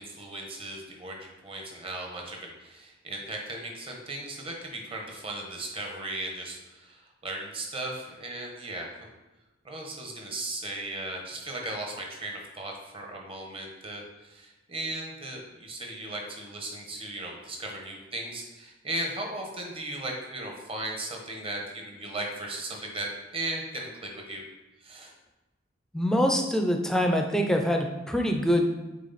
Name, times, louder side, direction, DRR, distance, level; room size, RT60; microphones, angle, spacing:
voice 1, 0.0-8.9 9.6-24.4 24.8-25.1, right 2 dB, 30° right, 1 dB, 1.1 m, -37 dB
voice 2, 25.9-28.7, equal, 5° left, 3 dB, 0.6 m, -24 dB
7.3 x 4.4 x 4.2 m, 1.1 s
head